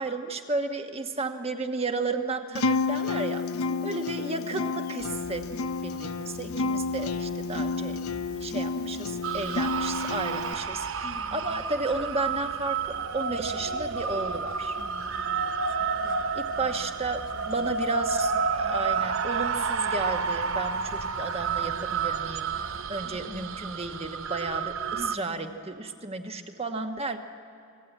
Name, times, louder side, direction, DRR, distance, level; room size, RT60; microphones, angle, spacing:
voice 1, 0.0-3.5 3.8-5.5 5.8-8.0 8.3-14.8 16.3-22.5 22.9-27.2, right 3 dB, 25° right, 6 dB, 1.2 m, -33 dB
Acoustic guitar, 2.5-10.5, left 4 dB, 75° left, 0.7 m, -30 dB
voice 2, 3.7-4.9 8.7-9.3 11.0-11.6 14.8-17.0 17.3-18.8 23.0-23.5 24.9-25.6, left 2 dB, 40° left, 7 dB, 1.2 m, -47 dB
sound 1, 5.0-22.8, right 1 dB, 80° right, 3.2 m, -50 dB
sound 2, 9.2-25.2, right 5 dB, 60° right, 0.7 m, -30 dB
28.0 x 19.5 x 9.1 m, 2.5 s
head